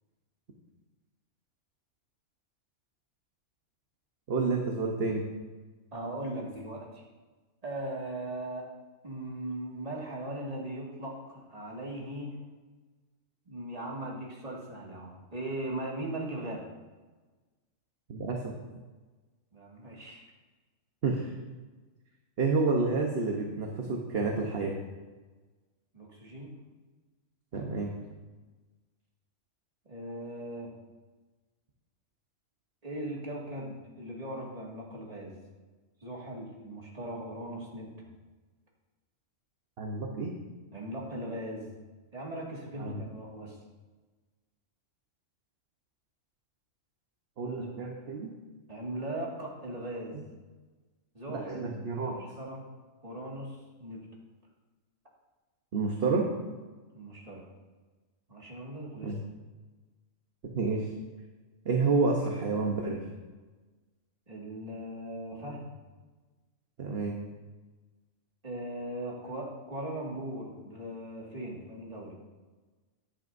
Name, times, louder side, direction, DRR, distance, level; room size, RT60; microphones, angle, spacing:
voice 1, 4.3-5.3 18.1-18.5 21.0-21.3 22.4-24.7 27.5-27.9 39.8-40.4 42.8-43.0 47.4-48.3 50.1-50.2 51.3-52.2 55.7-56.3 59.0-59.2 60.5-60.9 61.6-63.1 66.8-67.2, right 4 dB, 50° right, 0 dB, 1.2 m, -29 dB
voice 2, 5.9-7.0 7.6-8.7 9.0-12.4 13.5-16.7 19.5-20.3 25.9-26.5 29.9-30.7 32.8-35.4 36.0-38.0 40.7-41.7 42.1-43.6 47.6-47.7 48.7-50.2 51.1-52.7 53.0-54.1 56.9-57.5 58.3-59.2 64.3-65.7 68.4-72.1, right 1 dB, 30° right, -3 dB, 2.2 m, -39 dB
14.0 x 10.5 x 2.7 m, 1.3 s
omnidirectional pair, 1.3 m